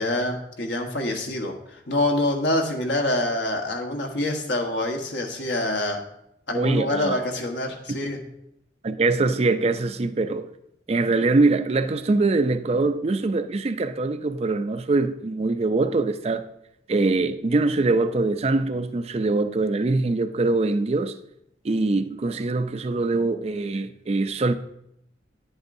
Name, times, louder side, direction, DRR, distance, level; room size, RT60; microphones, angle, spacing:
voice 1, 0.0-6.0 6.5-8.2, left 1 dB, 70° left, 1.2 m, -26 dB
voice 2, 6.5-7.2 8.8-10.5 10.9-16.5 16.9-21.1 21.6-24.5, right 3 dB, 35° right, 0.4 m, -23 dB
10.5 x 8.0 x 2.6 m
head